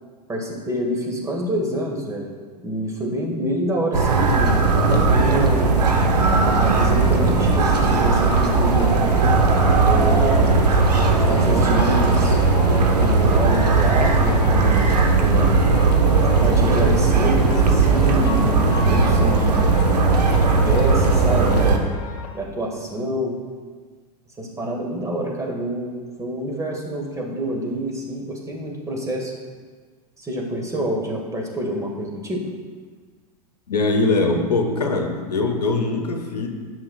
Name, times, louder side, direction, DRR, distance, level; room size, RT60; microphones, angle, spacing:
voice 1, 0.3-2.3 2.6-5.8 6.5-8.9 9.8-10.5 11.3-12.4 13.0-14.9 15.2-15.6 16.4-19.7 20.4-21.9 22.3-23.3 24.4-29.3 30.2-32.5, right 1 dB, 15° right, 0 dB, 1.5 m, -27 dB
sound 1, 3.9-21.8, right 3 dB, 80° right, 0.9 m, -17 dB
sound 2, 6.3-22.3, left 5 dB, 45° left, 1.2 m, -35 dB
voice 2, 33.7-36.5, left 3 dB, 85° left, 4 dB, 0.9 m, -22 dB
11.5 x 6.1 x 2.4 m, 1.5 s
figure-of-eight pair, 90°, 20 cm